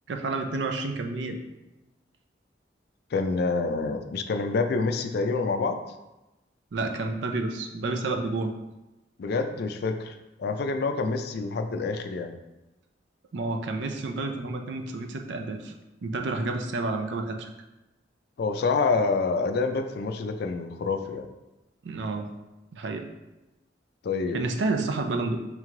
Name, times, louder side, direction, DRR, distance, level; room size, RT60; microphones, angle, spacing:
voice 1, 0.1-1.4 6.7-8.5 10.5-10.6 13.3-15.7 16.0-17.5 21.8-22.3 22.7-23.1 24.3-25.4, right 3 dB, 75° right, 5 dB, 0.5 m, -30 dB
voice 2, 3.1-5.8 9.2-12.3 18.4-21.3 24.0-24.4, left 4 dB, 60° left, 6 dB, 0.4 m, -27 dB
3.4 x 3.1 x 3.7 m, 1.0 s
head